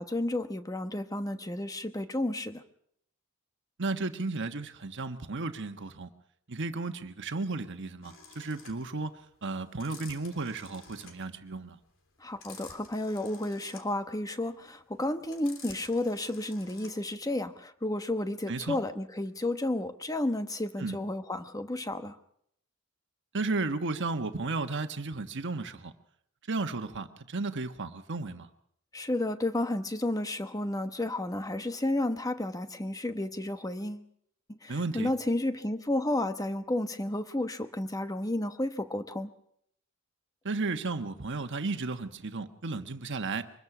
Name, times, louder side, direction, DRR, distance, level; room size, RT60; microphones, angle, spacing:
voice 1, 0.0-2.6 12.2-22.1 28.9-34.1 34.5-39.3, left 1 dB, 15° left, 9 dB, 1.1 m, -32 dB
voice 2, 3.8-6.1 6.5-9.1 9.4-11.8 18.5-18.8 20.8-21.0 23.3-25.9 26.5-28.5 34.7-35.1 40.4-43.4, right 3 dB, 60° right, 8 dB, 1.4 m, -34 dB
sound 1, 8.0-17.2, left 5 dB, 65° left, 3.5 m, -51 dB
24.5 x 21.0 x 6.1 m, 0.71 s
head